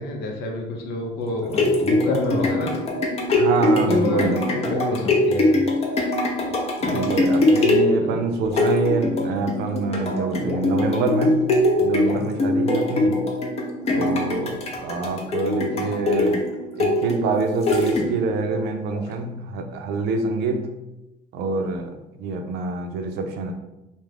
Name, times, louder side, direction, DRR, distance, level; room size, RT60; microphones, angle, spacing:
voice 1, 0.0-2.8 3.6-5.6 8.0-8.2 15.8-16.1, left 2 dB, 85° left, 2 dB, 0.6 m, -27 dB
sound 1, 1.3-18.4 18.9-19.0, left 2 dB, 35° left, 0.5 m, -22 dB
voice 2, 3.3-4.4 6.8-11.4 11.8-13.2 13.9-16.4 16.8-20.7 21.3-23.5, right 3 dB, 80° right, 5 dB, 0.4 m, -26 dB
2.3 x 2.1 x 3.2 m, 0.95 s
cardioid pair, 110°, 17 cm